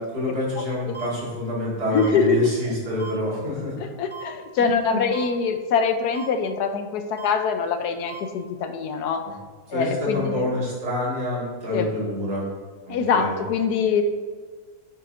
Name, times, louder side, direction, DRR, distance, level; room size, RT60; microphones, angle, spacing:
voice 1, 0.0-3.8 4.6-5.0 9.2-9.3 9.7-12.4 12.9-13.4, left 1 dB, 80° right, -5 dB, 2.8 m, -27 dB
sound 1, 0.9-1.1 2.0-2.1 3.0-3.1 4.1-4.2 5.1-5.3 6.1-6.3 7.2-7.3 8.1-8.2, right 8 dB, 5° left, 1.1 m, -37 dB
voice 2, 1.9-2.5 4.0-9.3 9.7-10.5 11.7-11.9 12.9-14.0, left 5 dB, 85° left, 8 dB, 1.2 m, -23 dB
8.8 x 7.8 x 2.6 m, 1.5 s
omnidirectional pair, 1.7 m